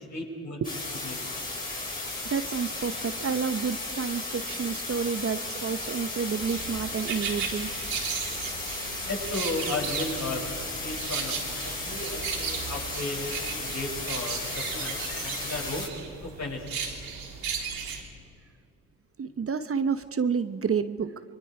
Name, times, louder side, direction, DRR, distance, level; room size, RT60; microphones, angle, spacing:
voice 1, 0.1-1.2 9.1-10.4 10.8-15.9 16.2-16.7, left 2 dB, 50° left, -2 dB, 7.1 m, -35 dB
sound 1, 0.6-15.9, left 2 dB, 25° left, 7.0 m, -35 dB
voice 2, 2.3-7.7 19.2-21.1, right 6 dB, 40° right, 11 dB, 0.9 m, -29 dB
sound 2, 6.4-18.0, right 6 dB, 80° right, 3.7 m, -36 dB
29.5 x 22.5 x 4.9 m, 2.5 s
supercardioid pair, 65°, 36 cm